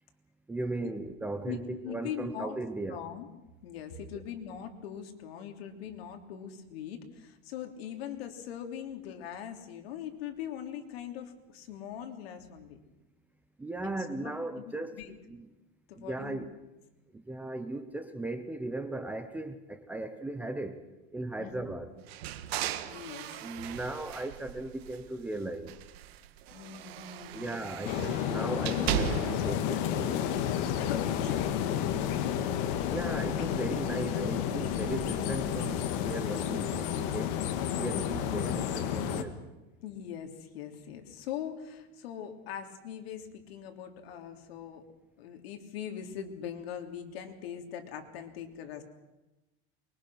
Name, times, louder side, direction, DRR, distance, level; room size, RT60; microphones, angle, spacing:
voice 1, 0.5-3.0 4.1-4.2 13.6-15.5 16.0-16.5 17.1-20.8 21.1-21.9 23.4-25.8 27.3-30.3 32.9-37.4 37.8-39.4, right 2 dB, 5° right, 0.7 m, -37 dB
voice 2, 1.5-2.5 2.9-3.3 3.6-12.8 14.2-15.1 15.9-16.5 21.4-21.8 22.8-23.3 26.5-27.7 30.8-31.6 39.8-44.9 45.2-48.8, left 9 dB, 70° left, 3.3 m, -41 dB
sound 1, 22.1-25.2 25.6-29.6, right 11 dB, 75° right, 1.6 m, -37 dB
sound 2, 27.8-39.2, left 9 dB, 45° left, 1.9 m, -31 dB
sound 3, 29.4-37.2 37.5-37.6, left 1 dB, 15° left, 7.0 m, -49 dB
24.0 x 22.5 x 6.3 m
supercardioid pair, 170°, 32 cm